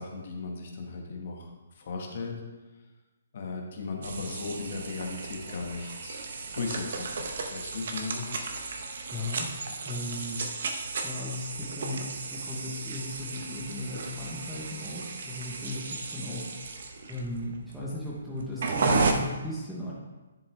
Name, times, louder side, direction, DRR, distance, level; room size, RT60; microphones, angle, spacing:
voice 1, 0.0-2.3 3.3-6.2 6.5-8.3, left 4 dB, 40° left, 1 dB, 1.3 m, -36 dB
sound 1, 4.0-19.1, right 4 dB, 45° right, 0.8 m, -34 dB
voice 2, 9.1-9.5 9.8-10.4 11.0-16.5 17.1-19.9, left 1 dB, ahead, -8 dB, 0.8 m, -36 dB
11.0 x 6.9 x 3.2 m, 1.2 s
hypercardioid pair, 175°, 0 cm